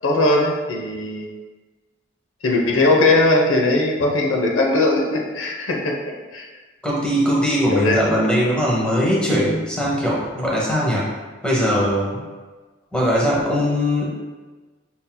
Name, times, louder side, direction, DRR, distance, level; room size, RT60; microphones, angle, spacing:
voice 1, 0.0-1.3 2.4-6.0 6.3-6.5 7.7-8.0, left 2 dB, 75° left, 0 dB, 0.7 m, -19 dB
voice 2, 6.8-11.1 11.4-12.2 12.9-14.1, equal, 5° left, -6 dB, 1.0 m, -20 dB
5.7 x 2.7 x 2.2 m, 1.3 s
head